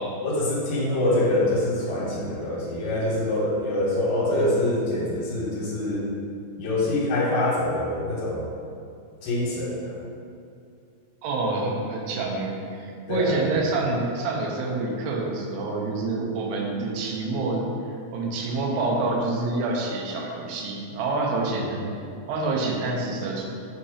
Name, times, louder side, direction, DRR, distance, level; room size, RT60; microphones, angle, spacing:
voice 1, 0.2-6.0 6.6-8.5 9.2-10.0 13.1-13.4 21.5-21.9, left 1 dB, 70° left, -6 dB, 2.7 m, -25 dB
voice 2, 11.2-17.7 18.1-21.8 22.3-23.5, right 3 dB, 90° right, -1 dB, 2.9 m, -27 dB
8.1 x 2.8 x 4.9 m, 2.4 s
omnidirectional pair, 4.6 m